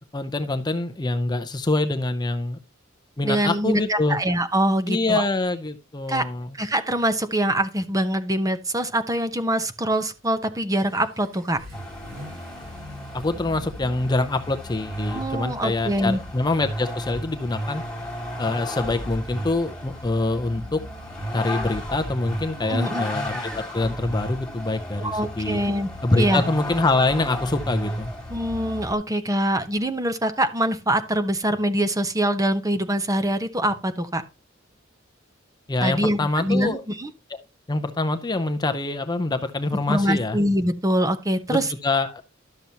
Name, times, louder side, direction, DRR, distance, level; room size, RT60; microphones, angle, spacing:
voice 1, 0.1-2.6 3.2-4.2 4.9-6.6 13.1-17.8 18.4-20.8 21.3-25.6 26.0-28.1 35.7-36.8 37.3-37.4 37.7-40.4 41.5-42.2, left 2 dB, 20° left, 0.6 m, -25 dB
voice 2, 3.2-5.3 6.1-6.2 6.5-11.6 15.1-16.2 22.6-23.1 25.0-25.9 26.2-26.4 28.3-34.2 35.8-37.1 39.9-41.7, right 1 dB, 15° right, 0.9 m, -24 dB
Vehicle / Accelerating revving vroom, 10.2-29.9, equal, 80° right, 4.9 m, -49 dB
Vehicle, 11.7-29.0, equal, 5° left, 2.6 m, -33 dB
12.0 x 6.9 x 2.9 m
head